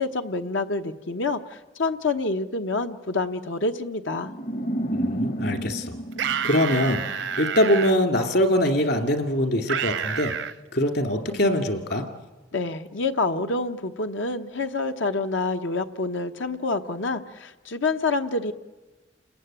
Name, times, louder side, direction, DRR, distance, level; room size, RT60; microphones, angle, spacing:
voice 1, 0.0-4.3 12.5-18.5, left 3 dB, 85° left, 7 dB, 1.0 m, -27 dB
sound 1, 4.2-7.4, right 1 dB, 40° left, 0.9 m, -30 dB
voice 2, 4.9-6.0 6.4-7.0 7.4-10.3 10.7-12.0, left 1 dB, 60° left, 6 dB, 2.6 m, -23 dB
sound 2, 6.1-7.9 9.7-10.5, right 7 dB, 75° right, 0.8 m, -29 dB
29.5 x 20.0 x 9.0 m, 1.2 s
head